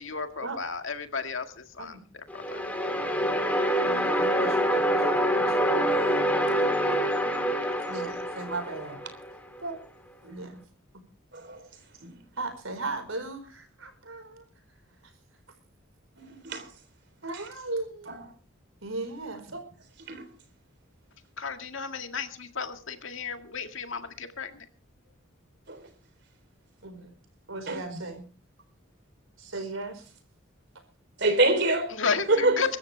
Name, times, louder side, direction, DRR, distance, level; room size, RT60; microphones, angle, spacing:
voice 1, 0.0-2.0 2.3-2.6 21.4-24.7 31.9-32.8, left 5 dB, 75° left, 1.9 m, -33 dB
sound 1, 2.3-9.3, equal, 5° left, 2.3 m, -26 dB
voice 2, 3.8-6.2 6.9-7.0 7.9-9.0 9.6-9.8 10.2-10.6 10.9-11.0 12.4-14.4 17.2-18.2 18.8-19.6 26.8-27.1 27.5-28.3 29.4-30.1 32.3-32.6, right 2 dB, 85° right, 4.7 m, -37 dB
voice 3, 16.2-16.7 20.1-20.3 25.7-25.8 27.7-27.8 31.2-32.0 32.3-32.6, right 2 dB, 55° right, 3.6 m, -25 dB
23.5 x 13.5 x 3.4 m
head